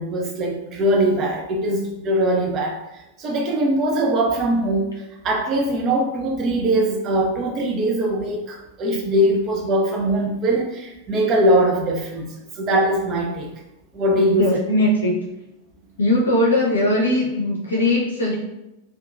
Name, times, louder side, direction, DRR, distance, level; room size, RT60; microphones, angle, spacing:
voice 1, 0.0-2.8 3.2-4.9 5.2-12.2 12.6-13.5 13.9-14.5, right 1 dB, 30° right, 2 dB, 0.5 m, -21 dB
voice 2, 14.1-15.2 16.0-18.4, left 1 dB, 70° left, -3 dB, 0.6 m, -20 dB
2.7 x 2.4 x 2.4 m, 0.93 s
figure-of-eight pair, 90°, 0 cm